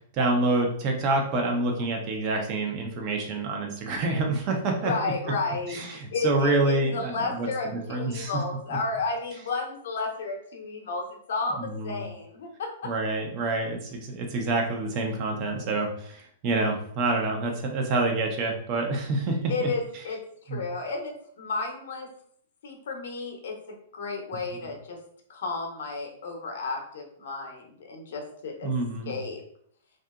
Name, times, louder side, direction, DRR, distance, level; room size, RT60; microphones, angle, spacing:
voice 1, 0.1-4.9 5.7-7.5 7.9-8.3 11.6-12.0 12.8-19.7 20.5-20.6 28.6-29.2, right 2 dB, 40° right, 2 dB, 0.6 m, -27 dB
voice 2, 4.8-5.8 6.1-12.7 19.5-20.2 20.5-22.1 22.6-25.0 25.3-28.7 29.1-29.4, left 3 dB, 70° left, 2 dB, 0.7 m, -32 dB
2.7 x 2.4 x 2.3 m, 0.65 s
hypercardioid pair, 130°, 0 cm